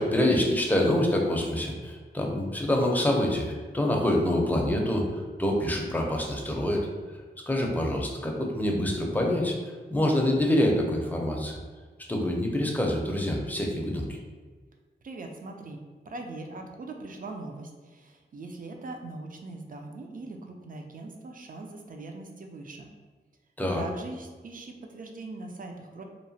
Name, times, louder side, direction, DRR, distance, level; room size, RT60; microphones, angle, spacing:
voice 1, 0.0-6.9 7.4-9.5 9.9-11.6 12.1-14.2 23.6-23.8, left 1 dB, 10° left, -1 dB, 0.5 m, -26 dB
voice 2, 15.0-22.9 23.7-26.0, right 2 dB, 50° right, 3 dB, 0.4 m, -41 dB
2.9 x 2.0 x 2.6 m, 1.5 s
wide cardioid pair, 65°, 19 cm